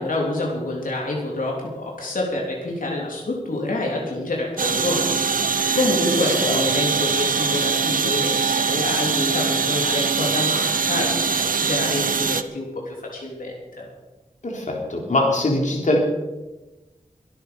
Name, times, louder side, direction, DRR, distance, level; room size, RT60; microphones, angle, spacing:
voice 1, 0.0-13.9, left 2 dB, 80° left, -2 dB, 3.3 m, -27 dB
sound 1, 4.6-12.4, right 5 dB, 85° right, 0.8 m, -22 dB
voice 2, 14.4-16.0, left 1 dB, 65° left, 0 dB, 3.5 m, -22 dB
23.0 x 9.2 x 5.3 m, 1.1 s
wide cardioid pair, 85°, 14 cm